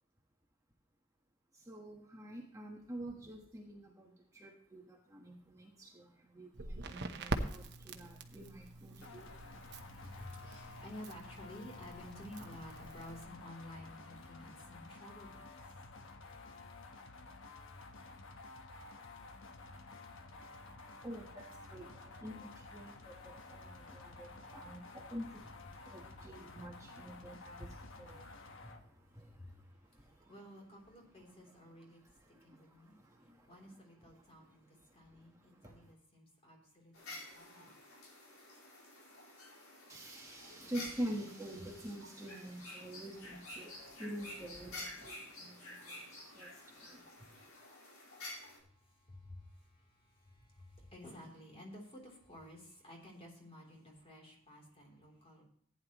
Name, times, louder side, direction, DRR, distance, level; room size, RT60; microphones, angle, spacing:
voice 1, 1.5-9.7 20.3-20.4 21.0-29.6 29.9-30.3 32.3-33.5 34.9-35.8 39.9-47.0, right 1 dB, 15° right, 0 dB, 1.3 m, -47 dB
Crackle, 6.5-13.2, right 2 dB, 55° right, 1.0 m, -44 dB
sound 1, 9.0-28.8, left 3 dB, 65° left, 1.2 m, -52 dB
voice 2, 9.8-15.8 29.3-29.6 30.0-32.0 32.4-32.9 33.2-37.8 48.5-55.4, left 1 dB, 30° left, 0 dB, 3.3 m, -53 dB
sound 2, 36.9-48.6, left 1 dB, 80° left, 4.4 m, -50 dB
15.0 x 9.8 x 3.0 m, 0.63 s
head